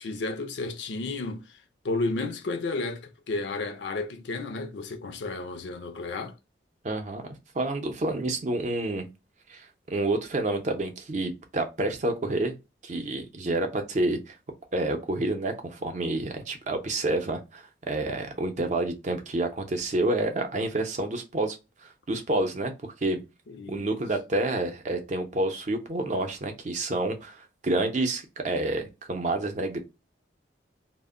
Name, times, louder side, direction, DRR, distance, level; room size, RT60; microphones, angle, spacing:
voice 1, 0.0-1.6 1.8-6.4 23.5-23.9, left 3 dB, 80° left, 0.5 m, -32 dB
voice 2, 6.8-7.3 7.5-9.1 9.5-12.6 12.8-14.4 14.7-21.5 22.1-23.2 23.7-29.8, right 2 dB, 40° right, 0.5 m, -29 dB
2.1 x 2.1 x 3.5 m
head